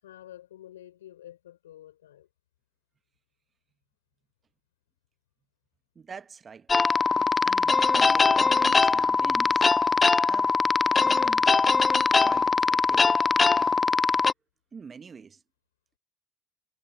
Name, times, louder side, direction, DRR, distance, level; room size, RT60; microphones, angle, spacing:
voice 1, 0.0-2.3, left 12 dB, 80° left, 5.3 m, -48 dB
voice 2, 5.9-6.7 7.4-9.7 10.3-10.5 11.0-11.5 12.2-13.1 14.7-15.4, right 6 dB, 35° right, 1.3 m, -44 dB
sound 1, 6.7-14.3, left 4 dB, 30° left, 0.4 m, -22 dB
hypercardioid pair, 55°, 0 cm